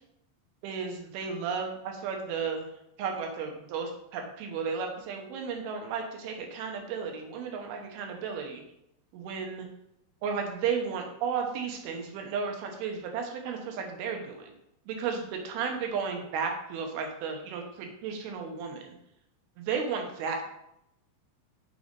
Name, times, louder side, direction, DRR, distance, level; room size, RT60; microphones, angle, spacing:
voice 1, 0.6-2.7 3.0-8.6 9.1-9.7 10.2-14.5 14.9-18.9 19.6-20.4, right 6 dB, 85° right, 3 dB, 3.0 m, -33 dB
6.8 x 3.9 x 5.1 m, 0.80 s
omnidirectional pair, 4.4 m